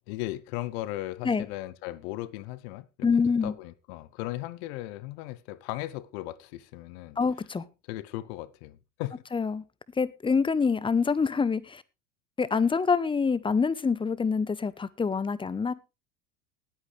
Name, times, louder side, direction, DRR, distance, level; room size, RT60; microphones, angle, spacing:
voice 1, 0.1-3.1 3.4-7.2 7.9-9.2, left 16 dB, 55° left, 0.9 m, -37 dB
voice 2, 3.0-3.5 7.2-7.6 9.3-9.6 10.0-11.8 12.4-15.7, left 5 dB, 15° left, 0.8 m, -26 dB
19.0 x 8.7 x 3.3 m
hypercardioid pair, 90°, 38 cm